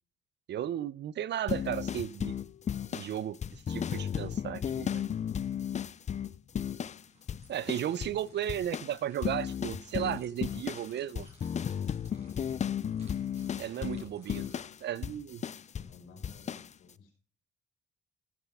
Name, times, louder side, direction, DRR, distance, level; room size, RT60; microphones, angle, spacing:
voice 1, 0.5-2.4 2.9-5.0 7.5-11.3 13.6-14.5 14.8-15.4, right 10 dB, 60° right, 20 dB, 0.6 m, -35 dB
sound 1, 1.5-7.0 7.3-8.2 8.5-15.9 16.2-16.7, left 8 dB, 35° left, 0.5 m, -34 dB
sound 2, 6.6-14.6, right 2 dB, 35° right, 6.6 m, -62 dB
voice 2, 8.0-8.5 10.1-10.5 13.5-14.1 15.7-17.1, left 4 dB, 90° left, 2 dB, 5.3 m, -55 dB
15.5 x 8.2 x 3.6 m, 0.34 s
cardioid pair, 90°, 20 cm